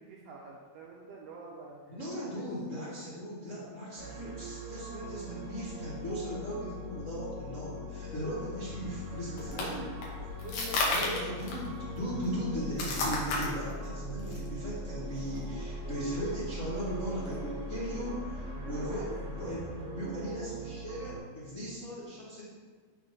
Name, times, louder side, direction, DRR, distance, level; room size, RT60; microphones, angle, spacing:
voice 1, 0.0-1.8 2.2-2.5 9.5-11.1 18.6-19.1 19.4-19.5, right 3 dB, 75° right, -4 dB, 1.5 m, -46 dB
voice 2, 2.0-9.8 10.9-19.6 19.9-22.4, equal, 50° left, -11 dB, 0.9 m, -38 dB
sound 1, 4.0-21.2, equal, 25° right, 1.3 m, -41 dB
sound 2, 8.8-17.4, left 2 dB, 85° left, 2.6 m, -36 dB
5.7 x 3.7 x 5.2 m, 1.5 s
omnidirectional pair, 3.6 m